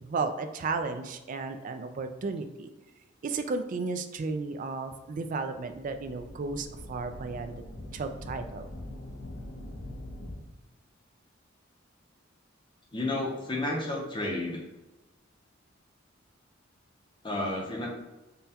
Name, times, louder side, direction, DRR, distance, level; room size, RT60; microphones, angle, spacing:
voice 1, 0.0-2.7 3.2-7.5 7.9-8.7, right 4 dB, 40° right, 7 dB, 0.3 m, -34 dB
sound 1, 5.7-10.3, left 1 dB, 75° left, 0.8 m, -43 dB
voice 2, 12.9-14.6 17.2-17.9, left 2 dB, 25° left, -2 dB, 0.6 m, -31 dB
5.4 x 2.2 x 2.8 m, 1.1 s
head